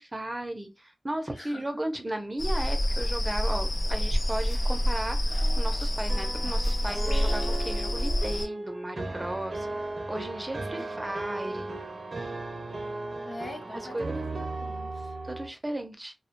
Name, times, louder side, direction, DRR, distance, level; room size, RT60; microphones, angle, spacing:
voice 1, 0.0-11.7 12.2-12.3 13.9-14.2 15.2-16.1, right 1 dB, 25° right, 0.5 m, -35 dB
voice 2, 1.3-1.6 10.8-11.0 13.2-15.1, left 2 dB, 50° left, 0.7 m, -44 dB
sound 1, 2.4-8.5, equal, 85° left, 0.6 m, -27 dB
sound 2, 5.4-15.5, right 2 dB, 65° right, 0.6 m, -36 dB
2.2 x 2.1 x 2.9 m
wide cardioid pair, 55°, 0 cm